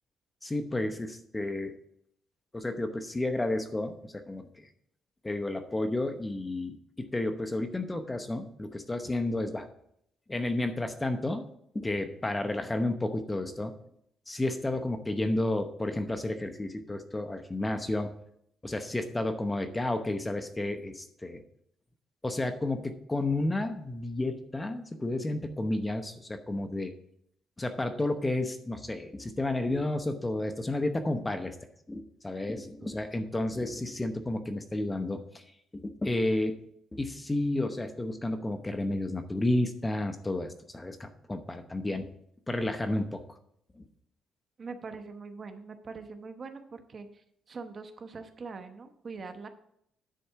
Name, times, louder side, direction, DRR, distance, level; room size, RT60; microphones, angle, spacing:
voice 1, 0.4-1.7 2.5-4.4 5.2-9.7 10.3-11.4 11.7-13.7 14.3-18.1 18.6-21.4 22.2-26.9 27.6-31.6 31.9-35.4 35.7-36.6 36.9-42.1 42.5-43.2 43.8-43.9, left 2 dB, 15° left, 7 dB, 0.9 m, -31 dB
voice 2, 44.6-49.5, right 4 dB, 45° right, 8 dB, 0.9 m, -43 dB
10.0 x 4.2 x 6.8 m, 0.73 s
cardioid pair, 90°, 0 cm